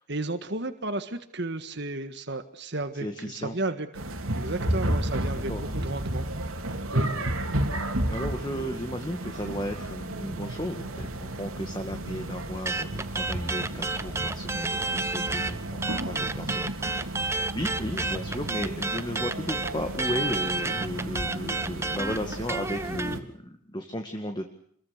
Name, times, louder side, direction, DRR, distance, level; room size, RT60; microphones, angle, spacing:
voice 1, 0.0-5.5 5.8-6.3 6.9-7.1, right 2 dB, 55° right, 8 dB, 1.7 m, -33 dB
voice 2, 3.0-3.6 5.5-5.6 8.1-17.3 17.5-24.5, equal, 20° left, 5 dB, 2.0 m, -35 dB
sound 1, 3.9-23.2, right 1 dB, 85° right, 3.3 m, -32 dB
sound 2, 12.7-15.5 15.8-23.2, right 3 dB, 15° right, 0.9 m, -30 dB
28.0 x 22.5 x 6.7 m, 0.65 s
head